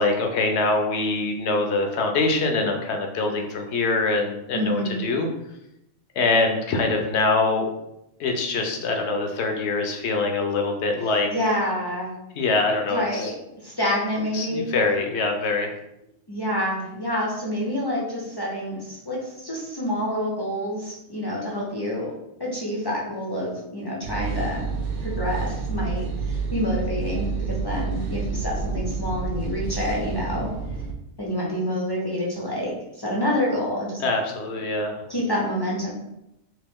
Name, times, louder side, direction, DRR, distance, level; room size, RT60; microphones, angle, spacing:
voice 1, 0.0-5.3 6.2-7.7 8.2-11.3 12.3-13.3 14.3-15.7 34.0-35.0, left 3 dB, 65° left, 3 dB, 0.8 m, -24 dB
voice 2, 4.5-5.0 11.3-12.1 12.9-13.4 13.6-14.7 16.3-22.1 22.4-24.7 25.0-30.5 31.2-34.0 35.1-35.9, left 1 dB, 30° left, -4 dB, 0.4 m, -27 dB
sound 1, 24.0-30.9, right 5 dB, 70° right, 0.8 m, -29 dB
3.0 x 2.9 x 3.5 m, 0.86 s
omnidirectional pair, 1.4 m